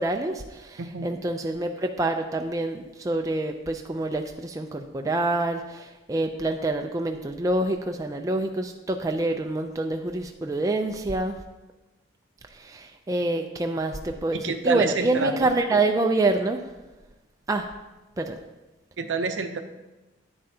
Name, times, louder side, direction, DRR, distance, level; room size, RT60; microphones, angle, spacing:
voice 1, 0.0-11.4 12.6-16.6 17.5-17.7 18.2-18.4, right 2 dB, 15° right, 4 dB, 0.3 m, -26 dB
voice 2, 0.8-1.2 14.3-15.5 19.0-19.6, right 4 dB, 65° right, 8 dB, 0.6 m, -28 dB
9.6 x 7.6 x 2.7 m, 1.1 s
head